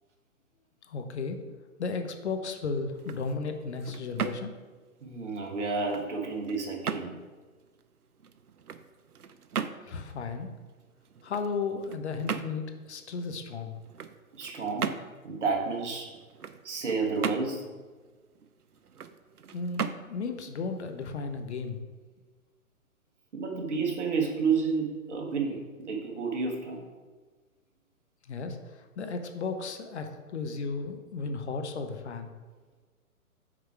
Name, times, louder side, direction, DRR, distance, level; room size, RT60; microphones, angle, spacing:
voice 1, 0.9-1.4 1.8-4.5 9.9-10.5 11.2-13.7 19.5-21.9 28.3-32.3, left 4 dB, 50° left, 6 dB, 0.7 m, -34 dB
sound 1, 2.8-21.7, right 7 dB, 85° right, 0.6 m, -39 dB
voice 2, 5.0-7.2 14.3-15.0 15.2-16.2 16.6-17.7 23.3-26.8, right 4 dB, 50° right, 1 dB, 1.4 m, -30 dB
5.9 x 4.6 x 4.7 m, 1.4 s
figure-of-eight pair, 130°, 44 cm